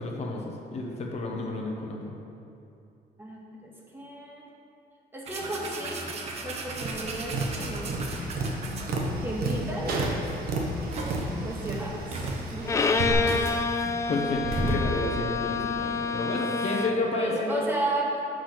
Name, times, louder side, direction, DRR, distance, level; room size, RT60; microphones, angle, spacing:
voice 1, 0.0-2.1 13.7-17.7, left 2 dB, 40° left, 0 dB, 0.9 m, -31 dB
voice 2, 3.2-4.4 5.1-6.0 6.4-8.0 9.2-9.9 11.4-13.5 17.1-18.1, right 1 dB, 15° right, -3 dB, 1.1 m, -34 dB
sound 1, 5.3-9.3 9.9-10.0 10.4-11.3 11.8-11.9 12.1-15.0, right 2 dB, 40° right, 0.9 m, -35 dB
Tap, 6.7-13.1, right 2 dB, 70° right, 1.2 m, -32 dB
Bowed string instrument, 12.6-17.2, left 4 dB, 20° left, 0.3 m, -28 dB
6.7 x 6.2 x 5.9 m, 2.8 s
cardioid pair, 170°, 16 cm